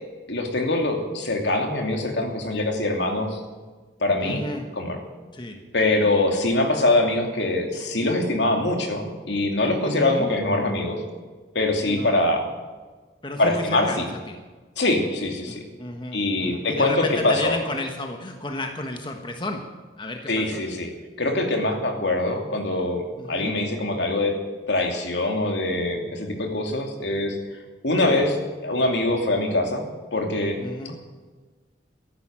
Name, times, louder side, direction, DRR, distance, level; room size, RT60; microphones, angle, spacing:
voice 1, 0.3-3.4 4.0-4.4 4.8-5.0 5.7-11.0 11.5-12.4 13.4-14.1 14.8-15.6 16.1-17.5 20.3-20.9 21.2-24.3 24.7-27.4 27.8-28.4 28.6-29.8 30.1-30.6, left 2 dB, 75° left, 3 dB, 2.7 m, -23 dB
voice 2, 4.2-4.7 5.3-5.6 9.8-10.3 11.8-12.2 13.2-14.4 15.5-20.6 23.2-23.6 28.1-28.2 30.6-31.0, left 1 dB, 25° left, 4 dB, 1.3 m, -32 dB
14.5 x 11.0 x 8.9 m, 1.3 s
head